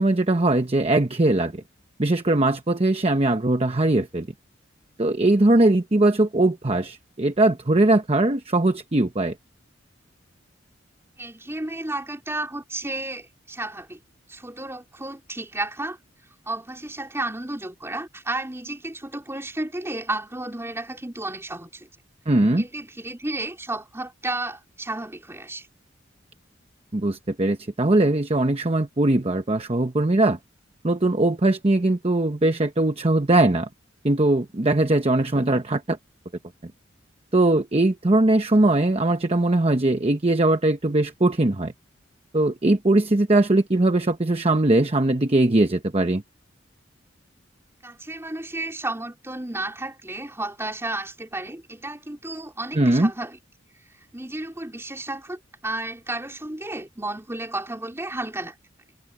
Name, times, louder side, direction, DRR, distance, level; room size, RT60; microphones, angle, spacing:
voice 1, 0.0-1.6 2.0-4.3 5.0-9.3 22.3-22.6 26.9-30.4 30.8-33.7 34.0-36.0 36.6-36.7 37.3-41.7 42.3-46.2 52.7-53.1, right 2 dB, 30° right, 0.9 m, -20 dB
voice 2, 11.2-14.0 14.3-16.0 16.5-21.9 22.6-25.7 47.8-53.4 54.1-58.6, right 2 dB, 15° right, 4.1 m, -32 dB
head